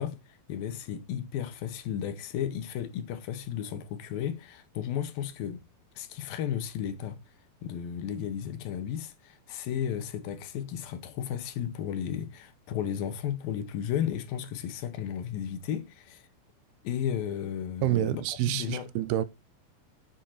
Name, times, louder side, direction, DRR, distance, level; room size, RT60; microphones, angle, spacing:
voice 1, 0.0-5.6 6.0-7.2 7.6-16.2 16.8-18.2 18.5-18.9, left 9 dB, 75° left, 2.6 m, -34 dB
voice 2, 17.8-19.2, right 14 dB, 85° right, 2.6 m, -28 dB
7.6 x 7.1 x 4.3 m
omnidirectional pair, 4.4 m